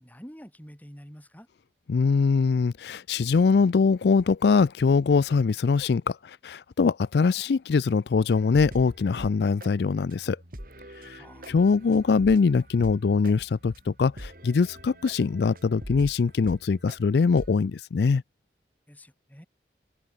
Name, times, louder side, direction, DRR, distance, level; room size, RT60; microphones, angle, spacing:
voice 1, 0.0-1.5 11.2-11.6 18.9-19.5, equal, 10° left, 4.8 m, -47 dB
voice 2, 1.9-10.4 11.0-18.2, left 5 dB, 70° left, 0.4 m, -23 dB
sound 1, 8.3-17.8, equal, 50° right, 7.5 m, -44 dB
head